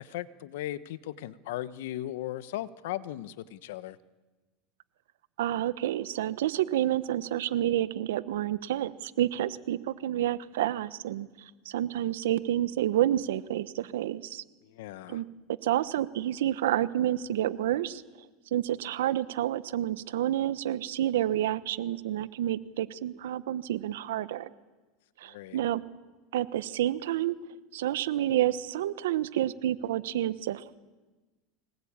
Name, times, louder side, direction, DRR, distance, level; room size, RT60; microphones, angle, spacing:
voice 1, 0.0-4.0 14.6-15.2 25.2-25.6, left 14 dB, 75° left, 15 dB, 1.1 m, -37 dB
voice 2, 5.4-11.3 11.6-14.4 15.1-15.2 15.6-18.0 18.5-24.5 25.2-25.8 26.3-27.4 27.7-30.7, right 12 dB, 85° right, 15 dB, 1.1 m, -29 dB
24.0 x 20.0 x 8.9 m, 1.3 s
supercardioid pair, 120°, 0 cm